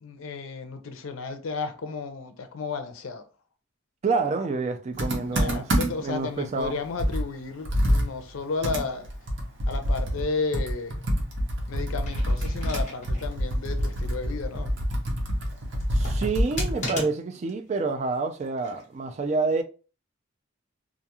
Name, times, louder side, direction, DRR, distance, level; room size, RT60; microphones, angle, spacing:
voice 1, 0.0-3.2 5.2-9.1 9.7-11.0 11.7-14.7, left 4 dB, 80° left, 0.5 m, -33 dB
voice 2, 4.0-5.7 6.0-6.8 15.9-19.6, right 4 dB, 35° right, 0.3 m, -28 dB
Computer keyboard, 5.0-6.2 6.6-6.7 7.0-16.9, equal, 65° right, 0.8 m, -27 dB
sound 1, 11.9-13.3 13.7-13.8 15.7-17.5 18.4-18.9, left 1 dB, 35° left, 1.0 m, -36 dB
2.4 x 2.3 x 2.8 m
head